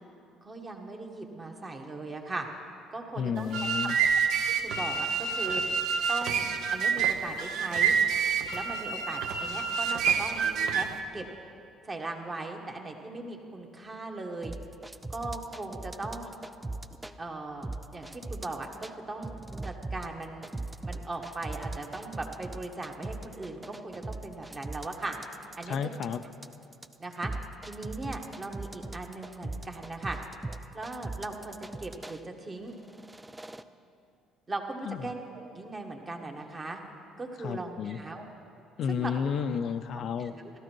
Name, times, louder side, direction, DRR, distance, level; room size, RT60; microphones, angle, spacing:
voice 1, 0.4-2.5 2.9-3.9 4.4-5.6 6.1-7.9 8.5-10.4 10.7-10.9 11.1-11.2 11.9-14.5 15.1-16.3 17.2-19.3 19.6-20.4 20.8-25.2 25.6-25.8 27.0-27.3 27.6-30.2 30.7-32.7 34.5-36.8 37.2-38.2 38.9-39.1 40.2-40.5, right 2 dB, 30° right, 2 dB, 1.5 m, -38 dB
voice 2, 3.2-4.0 25.7-26.2 34.8-35.1 37.4-38.0 38.8-40.3, left 7 dB, 60° left, 10 dB, 0.5 m, -32 dB
sound 1, 3.4-11.0, right 6 dB, 75° right, 0.8 m, -28 dB
sound 2, 14.4-17.1 17.6-18.9 19.2-32.2 32.8-33.6, right 2 dB, 10° right, 0.4 m, -39 dB
14.5 x 12.5 x 4.6 m, 2.5 s
cardioid pair, 100°, 0 cm